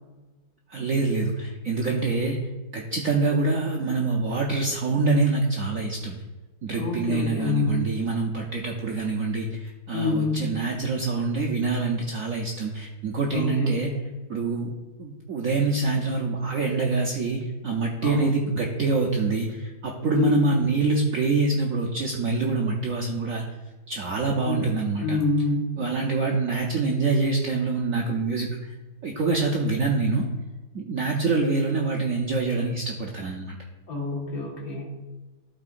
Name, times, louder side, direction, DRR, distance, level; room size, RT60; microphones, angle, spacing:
voice 1, 0.7-2.4 2.7-6.2 6.6-13.9 14.3-14.7 15.0-23.4 23.9-25.2 25.8-28.7 29.0-30.3 30.7-33.5, right 3 dB, 70° right, 0 dB, 0.8 m, -25 dB
voice 2, 6.8-7.9 9.9-10.5 13.3-14.0 18.0-18.4 20.1-20.5 24.4-24.7 25.0-25.7 33.9-34.9, left 3 dB, 45° left, -3 dB, 2.0 m, -26 dB
12.5 x 4.3 x 2.5 m, 1.2 s
omnidirectional pair, 2.2 m